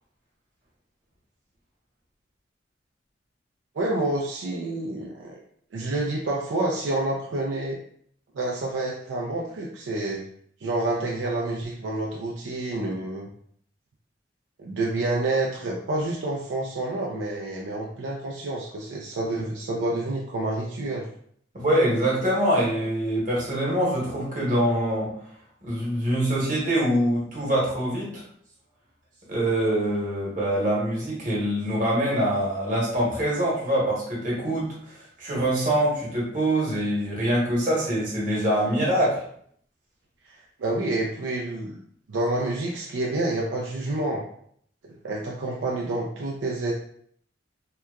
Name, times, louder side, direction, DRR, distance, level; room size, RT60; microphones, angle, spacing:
voice 1, 3.7-5.4 5.7-7.8 8.3-10.2 10.6-13.3 14.6-21.1 40.2-41.8 42.1-44.2 45.0-46.7, right 2 dB, 75° right, -3 dB, 0.4 m, -28 dB
voice 2, 21.5-25.1 25.6-28.2 29.3-39.2, right 1 dB, 45° right, -6 dB, 1.1 m, -24 dB
2.8 x 2.2 x 2.3 m, 0.64 s
head